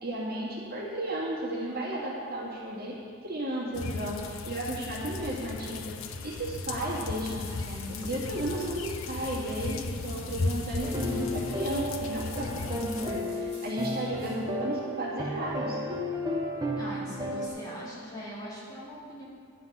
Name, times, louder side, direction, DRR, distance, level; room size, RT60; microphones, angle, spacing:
voice 1, 0.0-3.0 3.2-15.8, right 1 dB, 45° right, -6 dB, 2.1 m, -34 dB
sound 1, 3.7-13.2, left 3 dB, 65° left, 0.6 m, -36 dB
sound 2, 6.5-14.4 14.7-14.8, left 2 dB, 45° left, 3.1 m, -50 dB
sound 3, 10.8-17.5, left 1 dB, 20° right, 0.8 m, -34 dB
voice 2, 16.8-19.2, equal, 20° left, -8 dB, 2.6 m, -41 dB
11.0 x 7.8 x 5.5 m, 2.2 s
head